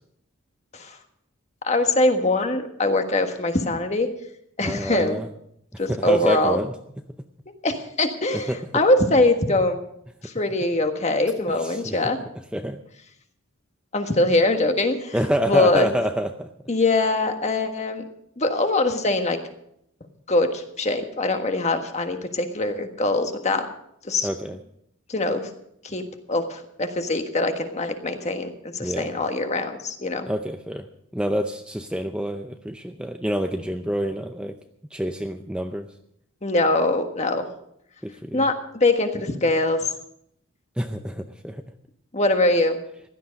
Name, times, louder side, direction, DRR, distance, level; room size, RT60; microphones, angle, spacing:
voice 1, 1.6-4.1 4.6-5.2 5.8-6.6 7.6-9.8 10.2-12.2 13.9-15.1 15.5-15.9 16.7-18.0 18.4-19.4 20.3-23.7 24.0-24.3 25.1-25.5 25.8-26.0 26.3-30.3 36.4-37.5 38.3-39.9 42.1-42.8, left 2 dB, 35° left, 6 dB, 1.5 m, -22 dB
voice 2, 4.6-5.3 5.9-6.7 8.3-8.6 11.6-12.0 12.5-12.8 15.1-16.5 24.2-24.6 28.8-29.1 30.3-30.9 31.1-34.5 34.9-35.9 38.0-38.4 40.8-41.6, equal, 5° right, 6 dB, 0.6 m, -27 dB
16.0 x 12.5 x 5.2 m, 0.73 s
head